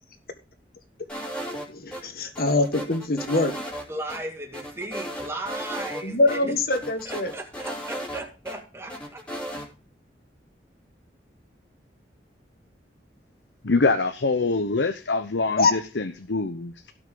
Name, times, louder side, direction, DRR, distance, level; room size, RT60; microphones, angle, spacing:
sound 1, 1.1-2.0 2.4-3.8 4.1-4.2 4.5-6.0 6.3-6.4 6.7-8.6 8.9-9.7, equal, 5° left, 3.3 m, -35 dB
voice 1, 1.7-3.5 6.0-7.3 15.6-15.7, left 2 dB, 55° left, 7 dB, 1.7 m, -23 dB
voice 2, 3.9-6.6 7.1-9.2, right 1 dB, 15° right, 2 dB, 2.1 m, -36 dB
voice 3, 13.6-16.9, left 3 dB, 90° left, 8 dB, 0.8 m, -24 dB
17.0 x 6.0 x 3.8 m, 0.34 s
head